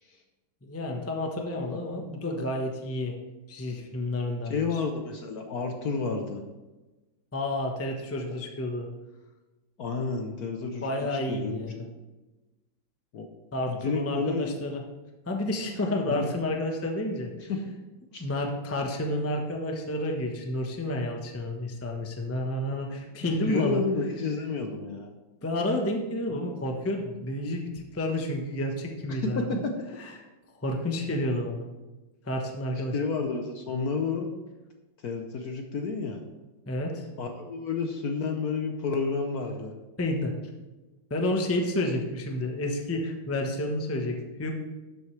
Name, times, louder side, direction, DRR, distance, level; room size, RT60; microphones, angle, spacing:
voice 1, 0.6-3.1 3.5-4.6 7.3-8.9 10.8-11.8 13.5-14.8 15.3-17.5 18.2-23.8 25.4-29.6 30.0-30.1 30.6-31.7 32.2-33.0 36.7-37.1 40.0-40.3 41.1-44.5, left 1 dB, 10° left, 2 dB, 0.6 m, -30 dB
voice 2, 1.7-2.0 4.5-6.4 9.8-11.9 13.1-13.3 13.7-14.6 16.1-16.3 17.5-17.6 18.1-18.3 23.5-25.1 26.3-26.4 29.1-29.7 32.9-34.3 35.0-36.2 37.2-39.8, left 4 dB, 60° left, 4 dB, 1.1 m, -31 dB
12.5 x 7.9 x 3.3 m, 1.1 s
omnidirectional pair, 2.2 m